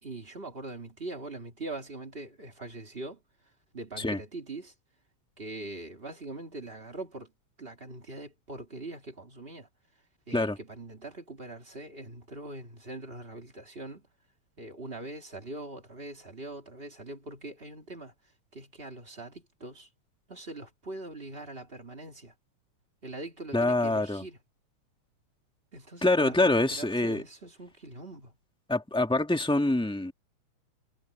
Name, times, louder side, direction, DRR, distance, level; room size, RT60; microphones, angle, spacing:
voice 1, 0.0-3.2 3.7-4.7 5.4-7.3 7.6-9.7 10.3-14.1 14.6-18.1 18.5-19.9 20.3-22.3 23.0-24.4 25.7-28.3, right 2 dB, 20° right, 1.9 m, -42 dB
voice 2, 23.5-24.2 26.0-27.2 28.7-30.1, left 2 dB, 5° left, 1.1 m, -25 dB
omnidirectional pair, 3.3 m